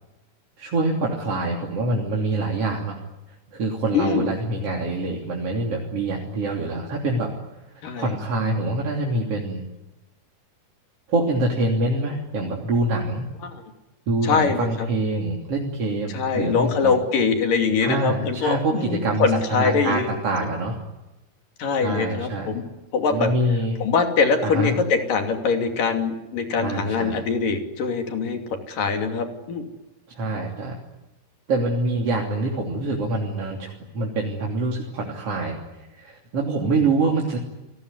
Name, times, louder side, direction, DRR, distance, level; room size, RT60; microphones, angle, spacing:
voice 1, 0.6-3.0 3.5-7.3 8.0-9.6 11.1-13.3 14.1-16.9 17.8-20.8 21.8-22.6 23.1-23.8 24.4-24.8 26.6-27.2 30.1-30.8 31.5-37.4, right 2 dB, 40° right, -1 dB, 3.8 m, -25 dB
voice 2, 3.9-4.3 7.8-8.1 13.4-13.6 14.2-14.9 16.1-20.1 21.6-22.6 22.9-23.3 23.8-28.4 28.7-29.7, left 5 dB, 60° left, 5 dB, 4.4 m, -23 dB
29.5 x 20.0 x 9.8 m, 1.0 s
omnidirectional pair, 4.6 m